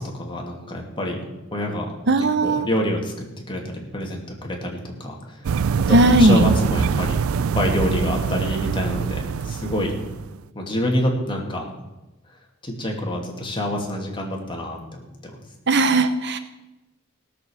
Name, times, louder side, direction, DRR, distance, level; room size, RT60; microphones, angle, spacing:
voice 1, 0.0-1.9 2.4-3.1 3.5-7.2 7.5-9.9 10.5-11.7 12.3-12.4 12.6-15.3, equal, 25° left, 0 dB, 2.6 m, -27 dB
voice 2, 2.1-2.7 5.9-6.5 15.7-16.4, right 2 dB, 55° right, 10 dB, 0.9 m, -17 dB
sound 1, 5.4-10.4, right 6 dB, 75° right, 0.4 m, -24 dB
17.0 x 6.9 x 7.2 m, 1.0 s
head